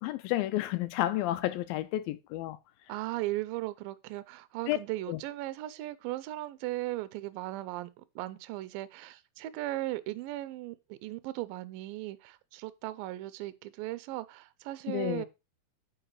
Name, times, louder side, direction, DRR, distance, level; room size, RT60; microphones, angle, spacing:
voice 1, 0.0-2.6 4.7-4.8 5.1-5.2 14.9-15.3, left 15 dB, 80° left, 2.2 m, -31 dB
voice 2, 2.9-15.3, right 17 dB, 80° right, 2.2 m, -37 dB
7.9 x 4.9 x 4.6 m
omnidirectional pair, 4.3 m